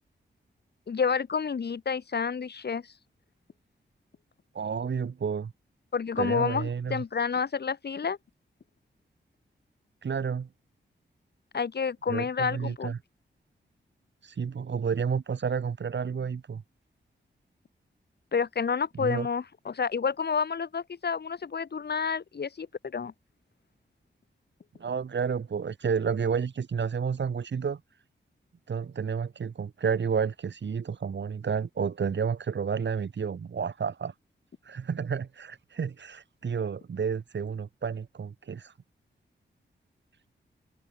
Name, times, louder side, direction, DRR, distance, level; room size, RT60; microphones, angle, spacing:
voice 1, 0.9-2.8 5.9-8.2 11.5-12.9 18.3-23.1, left 6 dB, 60° left, 2.4 m, -29 dB
voice 2, 4.5-5.5 6.2-7.0 10.0-10.5 12.1-13.0 14.2-16.6 18.9-19.3 24.8-27.8 28.7-34.1 34.6-38.7, right 6 dB, 70° right, 6.6 m, -31 dB
wide cardioid pair, 105°, 19 cm